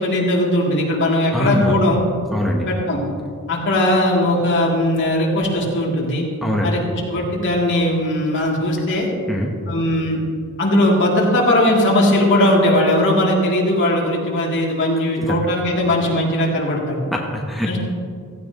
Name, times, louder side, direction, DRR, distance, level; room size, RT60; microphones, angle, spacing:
voice 1, 0.0-2.0 2.7-3.0 3.5-6.2 6.6-9.1 9.7-10.2 10.6-17.0 17.7-17.8, left 1 dB, 55° left, -3 dB, 3.0 m, -18 dB
voice 2, 1.3-1.7 2.3-2.7 6.4-6.7 9.3-9.6 15.2-15.4 17.1-17.8, equal, ahead, 0 dB, 1.0 m, -22 dB
16.0 x 16.0 x 3.1 m, 2.2 s
head